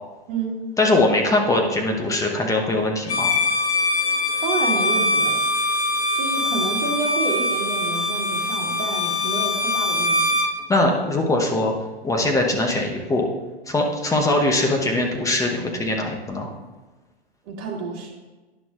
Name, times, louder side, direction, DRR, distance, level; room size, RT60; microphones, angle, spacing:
voice 1, 0.8-3.3 10.7-11.7 12.0-13.3 13.7-16.5, left 2 dB, 10° left, 1 dB, 0.9 m, -21 dB
Bowed string instrument, 3.0-10.5, left 2 dB, 85° left, 1.1 m, -22 dB
voice 2, 4.4-5.4 6.2-10.4 17.5-18.1, right 4 dB, 40° right, -1 dB, 1.8 m, -29 dB
11.0 x 6.0 x 2.4 m, 1.2 s
figure-of-eight pair, 110°, 32 cm